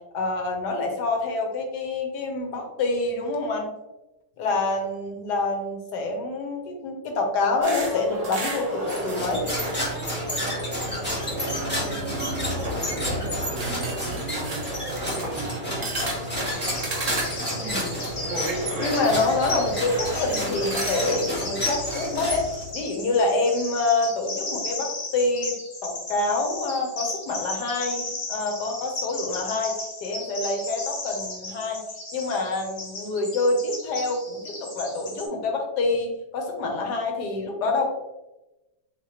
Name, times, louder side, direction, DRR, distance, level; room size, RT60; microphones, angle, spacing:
voice 1, 0.1-3.7 4.4-9.5 15.8-15.9 17.5-18.0 18.8-25.6 25.8-29.7 30.0-31.8 32.1-37.9, left 3 dB, 75° left, 2 dB, 1.4 m, -26 dB
sound 1, 7.6-21.2, right 1 dB, 45° right, 0.4 m, -33 dB
sound 2, 8.8-22.8, equal, 5° left, 1.2 m, -31 dB
voice 2, 11.3-14.8 15.1-16.3, right 6 dB, 75° right, 4 dB, 1.1 m, -37 dB
Bird vocalization bird call bird song, 16.5-35.3, left 2 dB, 40° left, 1.1 m, -35 dB
4.0 x 3.4 x 2.9 m, 1.0 s
omnidirectional pair, 1.8 m